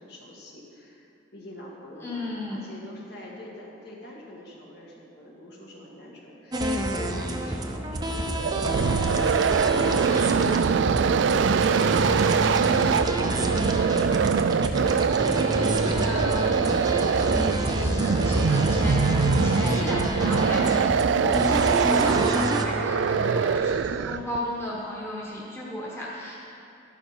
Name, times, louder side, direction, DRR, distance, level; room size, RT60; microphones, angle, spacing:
voice 1, 0.0-12.6 13.1-16.2 23.1-23.5, left 1 dB, 55° left, -3 dB, 2.1 m, -44 dB
voice 2, 2.0-2.6 15.9-16.5 17.6-26.4, left 1 dB, 15° left, -6 dB, 1.4 m, -34 dB
sound 1, 6.5-22.6, right 1 dB, 20° right, 0.7 m, -28 dB
sound 2, 8.3-24.4, right 6 dB, 70° right, 0.3 m, -23 dB
11.5 x 11.5 x 4.4 m, 2.6 s
head